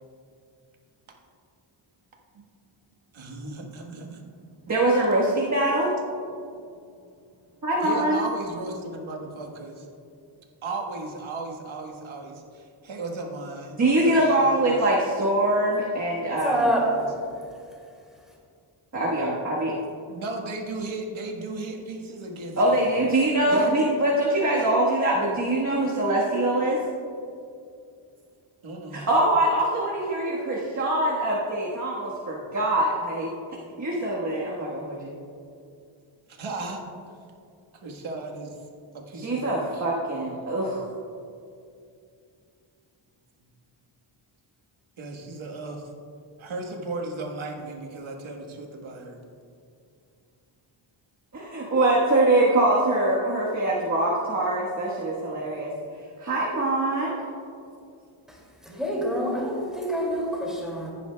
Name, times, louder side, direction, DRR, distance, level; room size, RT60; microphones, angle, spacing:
voice 1, 3.1-4.3 6.7-6.9 7.8-9.9 10.6-14.7 20.1-22.9 23.5-23.8 28.6-29.0 36.3-36.8 37.8-38.6 38.9-39.9 45.0-45.9 46.4-49.2, right 2 dB, 70° right, 1 dB, 1.5 m, -35 dB
voice 2, 4.7-5.9 7.6-8.2 13.8-16.7 18.9-19.7 22.6-26.8 28.9-33.3 33.8-35.1 39.2-40.8 51.3-55.7 56.2-57.2, right 1 dB, 35° right, -5 dB, 1.4 m, -23 dB
voice 3, 16.4-16.9 58.8-60.9, equal, ahead, -3 dB, 2.3 m, -26 dB
15.0 x 9.9 x 2.3 m, 2.5 s
wide cardioid pair, 110°, 49 cm